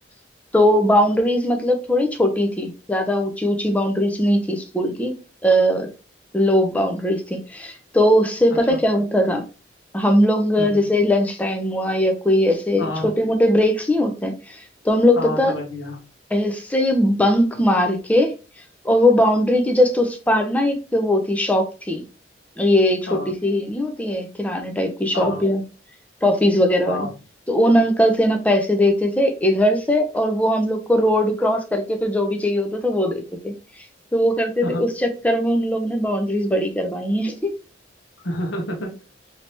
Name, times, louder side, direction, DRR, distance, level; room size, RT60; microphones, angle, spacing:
voice 1, 0.5-5.1 5.4-5.9 6.3-9.4 9.9-14.6 14.8-15.5 16.3-18.3 18.8-22.0 22.6-25.6 26.2-27.1 27.5-33.5 34.1-37.5, left 1 dB, 10° left, 4 dB, 0.4 m, -20 dB
voice 2, 12.8-13.1 15.2-16.0 23.1-23.3 25.1-25.5 26.9-27.2 34.6-34.8 38.2-38.9, left 1 dB, 80° left, 0 dB, 1.0 m, -29 dB
3.3 x 2.8 x 2.7 m, 0.32 s
head